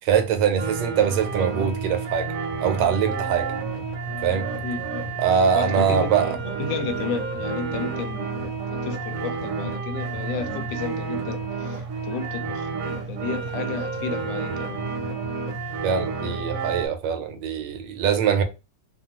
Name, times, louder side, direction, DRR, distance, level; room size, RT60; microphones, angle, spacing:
voice 1, 0.0-2.3 2.6-3.5 4.2-4.5 5.2-6.4 15.8-18.4, right 7 dB, 80° right, 1.2 m, -23 dB
sound 1, 0.6-16.9, right 4 dB, 60° right, 0.9 m, -30 dB
voice 2, 4.6-5.0 5.5-8.3 8.8-12.7 13.1-14.8, left 6 dB, 85° left, 1.3 m, -33 dB
2.9 x 2.3 x 2.8 m
omnidirectional pair, 1.9 m